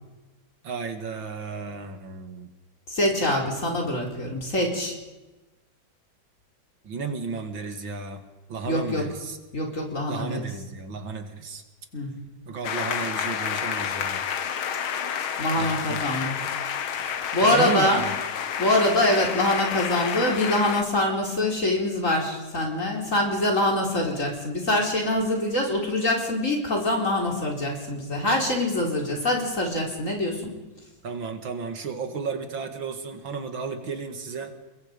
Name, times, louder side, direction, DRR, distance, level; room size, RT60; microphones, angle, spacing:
voice 1, 0.6-2.5 6.8-8.2 8.5-9.4 10.1-11.6 12.5-14.2 15.5-16.0 17.4-18.1 31.0-34.5, right 5 dB, 70° right, 6 dB, 2.7 m, -33 dB
voice 2, 2.9-5.0 8.7-9.0 9.5-10.5 11.9-12.1 15.4-16.4 17.0-18.0 18.6-30.5, left 1 dB, 40° left, 0 dB, 4.7 m, -24 dB
sound 1, 12.6-20.8, left 8 dB, 90° left, 2.1 m, -30 dB
29.5 x 21.5 x 5.4 m, 1.1 s
omnidirectional pair, 2.2 m